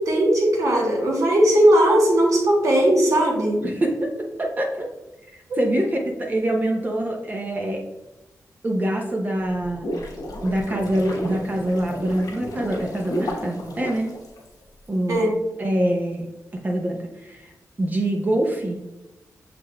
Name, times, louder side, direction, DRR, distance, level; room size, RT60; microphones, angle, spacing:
voice 1, 0.0-3.6 5.5-5.6 15.1-15.3, right 1 dB, 65° right, -1 dB, 1.3 m, -18 dB
voice 2, 3.6-4.9 5.3-7.8 8.6-9.9 10.4-14.1 14.9-15.3 15.6-16.3 16.6-17.5 17.8-18.8, right 1 dB, 30° right, 1 dB, 0.6 m, -25 dB
sound 1, 9.5-14.9, equal, 80° left, 1.1 m, -33 dB
6.2 x 3.7 x 2.3 m, 1.0 s
wide cardioid pair, 115°, 6 cm